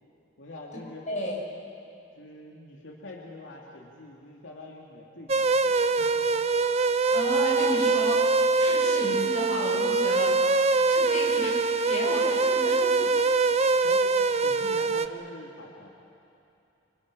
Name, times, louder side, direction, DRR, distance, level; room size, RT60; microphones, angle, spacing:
voice 1, 0.4-1.0 2.2-5.7 6.0-6.4 13.8-15.9, left 2 dB, 85° left, -2 dB, 2.7 m, -45 dB
voice 2, 1.1-1.4 6.9-8.2 8.6-13.1, left 1 dB, 40° left, -2 dB, 6.1 m, -33 dB
sound 1, 5.3-15.1, right 3 dB, 35° right, 0.7 m, -23 dB
27.0 x 27.0 x 6.3 m, 2.7 s
head